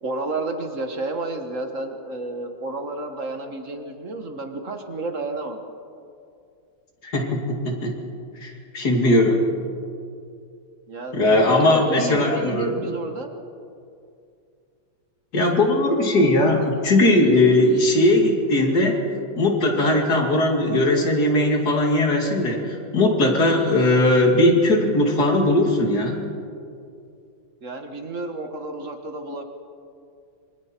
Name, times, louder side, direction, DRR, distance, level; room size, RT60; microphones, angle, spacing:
voice 1, 0.0-5.6 10.9-13.3 27.6-29.4, right 2 dB, 40° right, 5 dB, 1.6 m, -31 dB
voice 2, 7.0-7.9 8.4-9.5 11.1-12.8 15.3-19.0 19.4-22.7 22.9-26.2, left 1 dB, 50° left, 1 dB, 3.0 m, -19 dB
26.0 x 25.0 x 4.5 m, 2.4 s
omnidirectional pair, 2.3 m